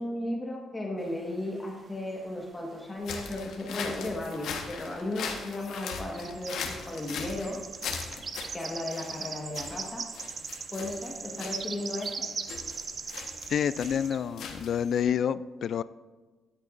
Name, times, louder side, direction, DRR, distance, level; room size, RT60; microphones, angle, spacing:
voice 1, 0.0-7.6 8.5-10.0 10.7-12.3, left 1 dB, 20° left, -2 dB, 1.5 m, -35 dB
sound 1, 1.1-2.7 3.0-4.2 4.5-4.7 5.4-14.2, right 5 dB, 40° right, 0.7 m, -40 dB
sound 2, 3.0-15.0, left 5 dB, 85° left, 1.3 m, -40 dB
voice 2, 13.5-15.8, left 8 dB, 60° left, 17 dB, 0.3 m, -28 dB
13.0 x 10.0 x 2.6 m, 1.3 s
cardioid pair, 115°, 0 cm